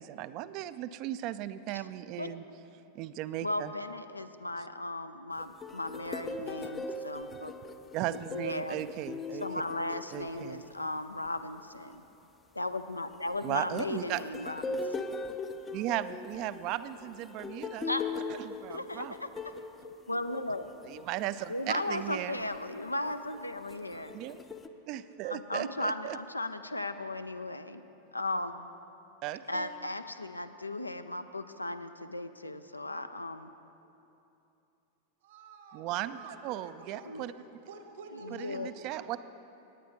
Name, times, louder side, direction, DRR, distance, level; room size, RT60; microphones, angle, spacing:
voice 1, 0.0-2.4 2.9-3.7 7.9-9.5 10.1-10.6 13.4-14.2 15.7-17.9 18.4-19.1 20.8-22.4 24.1-24.4 24.9-26.2 29.2-29.9 35.7-36.2 36.4-37.3 38.3-39.2, right 13 dB, 40° right, 14 dB, 0.4 m, -36 dB
voice 2, 3.4-7.5 8.1-8.8 9.4-12.0 12.5-15.2 17.8-18.1 18.7-19.3 20.1-20.7 21.5-24.1 25.2-27.8 28.1-28.7 29.5-33.5 37.0-37.3 38.1-38.7, left 2 dB, 85° left, 10 dB, 0.4 m, -36 dB
sound 1, 5.4-11.2 13.0-21.3 22.0-22.2 23.3-24.7, left 3 dB, 20° left, 0.5 m, -40 dB
voice 3, 35.2-37.3 37.7-38.8, right 3 dB, 55° right, 6 dB, 1.1 m, -49 dB
17.0 x 9.4 x 3.5 m, 2.9 s
figure-of-eight pair, 90°, 0 cm